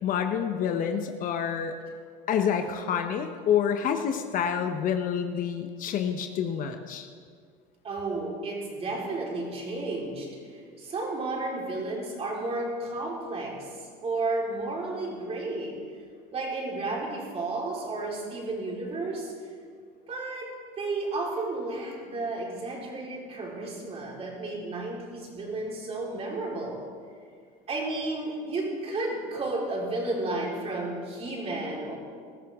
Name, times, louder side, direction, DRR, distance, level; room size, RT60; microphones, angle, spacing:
voice 1, 0.0-1.7 2.3-7.1, left 8 dB, 45° left, 6 dB, 1.0 m, -28 dB
voice 2, 7.8-15.8 16.3-19.3 20.1-26.8 27.7-32.0, right 2 dB, 30° right, -2 dB, 4.2 m, -32 dB
20.0 x 13.0 x 3.7 m, 2.1 s
supercardioid pair, 110°, 19 cm